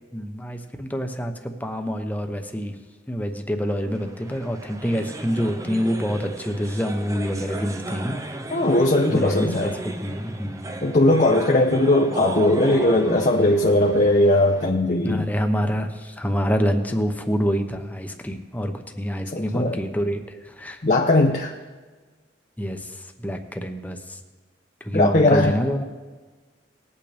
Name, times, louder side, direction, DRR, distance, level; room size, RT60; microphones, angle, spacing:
voice 1, 0.1-2.7 3.1-8.2 9.1-10.7 15.0-20.8 22.6-24.2 24.8-25.8, equal, 10° left, 5 dB, 0.9 m, -26 dB
sound 1, 4.0-14.7, right 2 dB, 20° right, 0.6 m, -35 dB
voice 2, 8.5-9.7 10.8-15.3 19.3-19.8 20.8-21.5 24.9-25.5, left 1 dB, 45° left, 2 dB, 0.7 m, -19 dB
19.5 x 8.7 x 3.4 m, 1.4 s
head